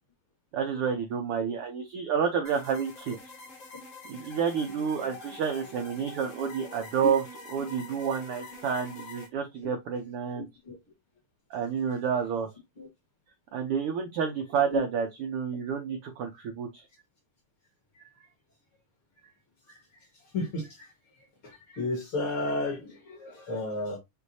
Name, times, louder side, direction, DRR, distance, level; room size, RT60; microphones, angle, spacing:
voice 1, 0.5-3.2 4.1-7.2 7.5-10.5 11.5-12.5 13.5-16.8, right 7 dB, 75° right, 1.3 m, -29 dB
sound 1, 2.4-9.3, left 3 dB, 65° left, 0.7 m, -45 dB
voice 2, 20.3-20.9 21.4-24.0, left 2 dB, 50° left, 2.1 m, -32 dB
6.4 x 2.5 x 2.7 m
omnidirectional pair, 3.4 m